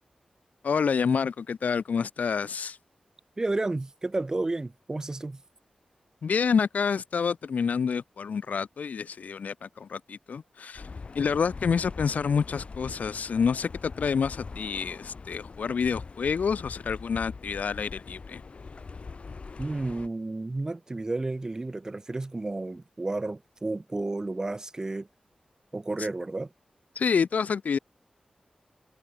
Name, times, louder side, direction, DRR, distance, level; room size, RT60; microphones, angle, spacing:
voice 1, 0.6-2.8 6.2-10.9 11.1-18.4 26.0-26.1 27.0-27.8, left 6 dB, 75° left, 0.6 m, -28 dB
voice 2, 3.4-5.4 19.6-25.1 25.7-26.5, right 2 dB, 25° right, 0.9 m, -31 dB
sound 1, 10.8-20.1, left 4 dB, 50° left, 4.7 m, -42 dB
wide cardioid pair, 135°, 3 cm